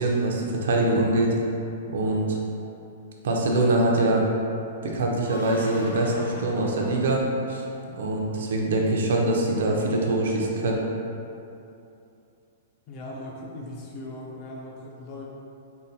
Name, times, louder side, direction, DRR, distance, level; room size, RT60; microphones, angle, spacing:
voice 1, 0.0-1.3 1.9-2.4 3.2-4.2 4.8-7.6 8.0-10.8, right 2 dB, 70° right, -1 dB, 0.5 m, -24 dB
sound 1, 5.1-8.1, left 1 dB, 90° left, 0.6 m, -40 dB
voice 2, 12.9-15.2, left 1 dB, 30° left, -3 dB, 0.4 m, -39 dB
3.8 x 2.2 x 2.7 m, 2.7 s
hypercardioid pair, 170°, 0 cm